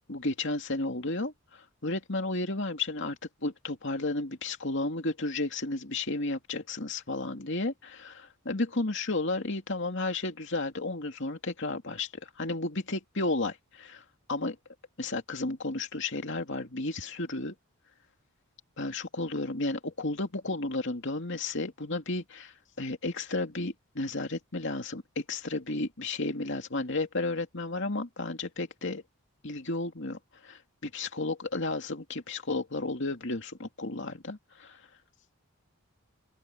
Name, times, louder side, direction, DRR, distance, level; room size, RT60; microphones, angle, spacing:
voice 1, 0.1-3.2 3.4-12.1 12.4-14.0 14.3-14.6 15.0-17.5 18.8-29.0 29.4-34.8, left 2 dB, 55° left, 2.7 m, -33 dB
open air
head